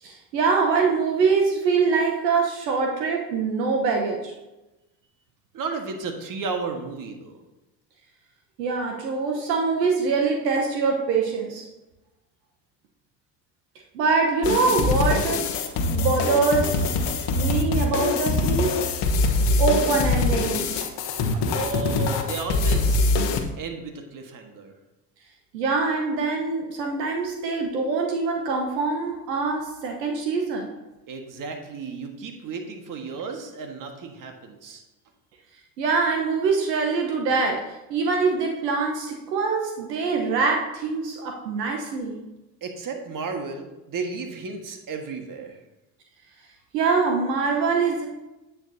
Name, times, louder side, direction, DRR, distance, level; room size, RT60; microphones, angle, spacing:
voice 1, 0.0-4.3 8.6-11.6 13.9-15.4 15.9-16.9 17.4-18.8 19.6-20.9 25.5-30.7 35.8-37.6 37.9-42.2 46.7-48.1, right 4 dB, 80° right, 1 dB, 1.2 m, -24 dB
voice 2, 5.5-7.4 21.4-23.1 23.6-24.8 31.1-34.8 42.6-45.6, right 4 dB, 40° right, 4 dB, 1.6 m, -33 dB
sound 1, 14.4-23.4, left 3 dB, 55° left, 1.1 m, -23 dB
8.9 x 8.2 x 2.8 m, 1.0 s
hypercardioid pair, 65°, 49 cm